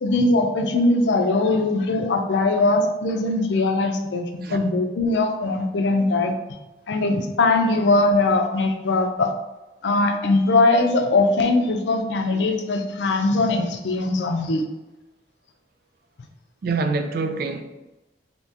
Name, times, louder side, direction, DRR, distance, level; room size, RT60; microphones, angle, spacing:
voice 1, 0.0-6.3 6.9-9.3 9.8-14.6, left 2 dB, 85° left, 0.5 m, -21 dB
voice 2, 16.6-17.6, right 3 dB, 60° right, 0.4 m, -25 dB
3.5 x 2.8 x 2.7 m
head